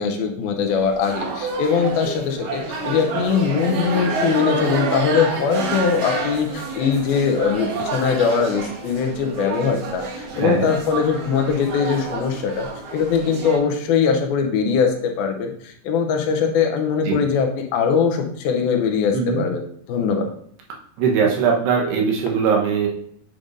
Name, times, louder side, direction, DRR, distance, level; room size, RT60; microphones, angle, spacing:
voice 1, 0.0-19.6 19.9-20.3, left 6 dB, 80° left, 3 dB, 2.4 m, -21 dB
sound 1, 0.7-13.6, right 3 dB, 65° right, 2.6 m, -29 dB
voice 2, 10.3-10.7 17.1-17.2 19.1-19.4 21.0-22.9, right 6 dB, 90° right, 0 dB, 3.1 m, -20 dB
8.9 x 4.9 x 2.6 m, 0.65 s
omnidirectional pair, 4.5 m